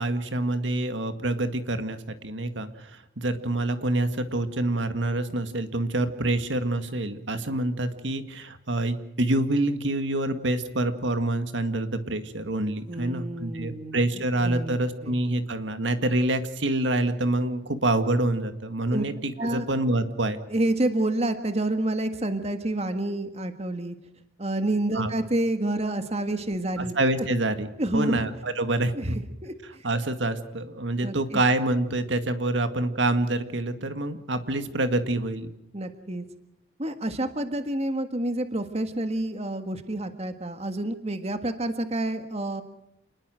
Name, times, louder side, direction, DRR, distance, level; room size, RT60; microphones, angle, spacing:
voice 1, 0.0-2.9 3.2-20.4 24.9-25.1 26.8-27.7 27.9-29.2 29.8-35.5, right 2 dB, 70° right, 9 dB, 2.0 m, -26 dB
voice 2, 12.9-14.0 14.4-15.2 18.9-19.0 19.4-19.7 20.5-23.9 24.4-27.3 27.8-28.2 28.9-29.9 31.0-31.4 35.7-36.2 36.8-42.6, right 1 dB, 35° right, 8 dB, 1.6 m, -29 dB
28.5 x 20.5 x 6.3 m, 0.83 s
head